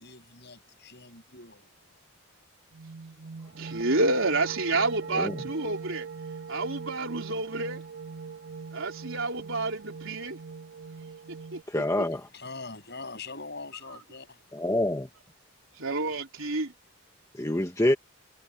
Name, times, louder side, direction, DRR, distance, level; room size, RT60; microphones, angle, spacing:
voice 1, 0.0-1.7 12.3-14.4, left 3 dB, 50° left, 8.0 m, -43 dB
sound 1, 2.7-11.6, right 5 dB, 45° right, 1.6 m, -41 dB
voice 2, 3.6-6.1 6.5-7.8 8.7-10.4 11.3-11.8 13.9-14.0 15.8-16.7, right 2 dB, 65° right, 3.9 m, -29 dB
voice 3, 11.7-12.3 14.5-15.1 17.3-17.9, left 1 dB, 15° left, 1.4 m, -26 dB
head